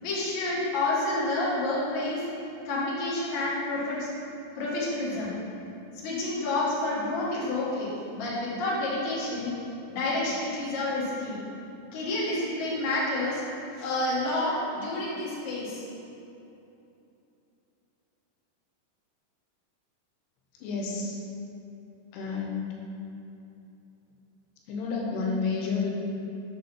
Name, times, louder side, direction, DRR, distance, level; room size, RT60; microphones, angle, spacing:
voice 1, 0.0-2.2 2.6-4.1 4.6-5.3 5.9-9.6 9.9-11.4 11.9-13.4 13.7-15.8, left 2 dB, 55° left, -7 dB, 2.5 m, -29 dB
voice 2, 20.6-21.1 22.1-22.7 24.7-25.9, left 4 dB, 85° left, -2 dB, 2.9 m, -30 dB
7.1 x 4.0 x 5.7 m, 2.8 s
omnidirectional pair, 4.6 m